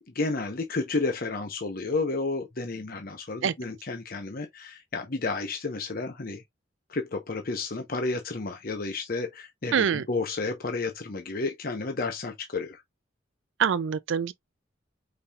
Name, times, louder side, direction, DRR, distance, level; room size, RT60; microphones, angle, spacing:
voice 1, 0.1-6.4 6.9-12.8, left 3 dB, 45° left, 0.8 m, -31 dB
voice 2, 9.7-10.1 13.6-14.3, right 7 dB, 65° right, 0.4 m, -25 dB
5.3 x 4.2 x 2.4 m
head